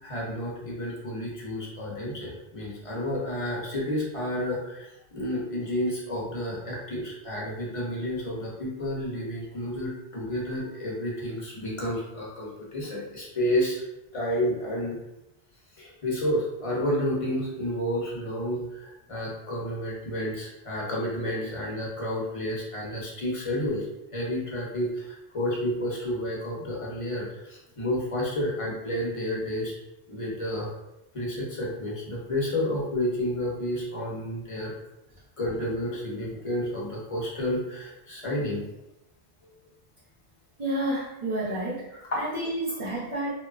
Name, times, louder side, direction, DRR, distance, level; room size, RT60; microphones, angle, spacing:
voice 1, 0.0-13.8 14.1-15.0 15.8-23.9 24.1-29.7 30.1-30.7 31.1-34.7 35.4-38.6 41.9-42.2, left 1 dB, 35° left, -5 dB, 0.7 m, -30 dB
voice 2, 40.6-43.3, right 1 dB, 40° right, -10 dB, 0.6 m, -30 dB
2.8 x 2.2 x 2.3 m, 0.90 s
omnidirectional pair, 1.1 m